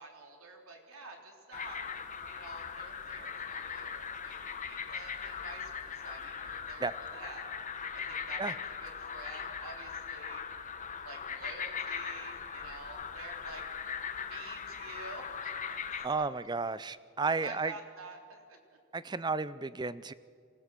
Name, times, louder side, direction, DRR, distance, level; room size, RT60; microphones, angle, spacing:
voice 1, 0.0-1.8 2.3-7.6 7.9-10.4 11.0-13.6 14.3-15.5 17.2-18.6, right 3 dB, 75° right, 2 dB, 3.5 m, -49 dB
sound 1, 1.5-16.1, left 6 dB, 35° left, 1.1 m, -40 dB
voice 2, 16.0-17.7 18.9-20.1, right 4 dB, 20° right, 16 dB, 0.5 m, -33 dB
27.0 x 16.0 x 7.6 m, 2.3 s
head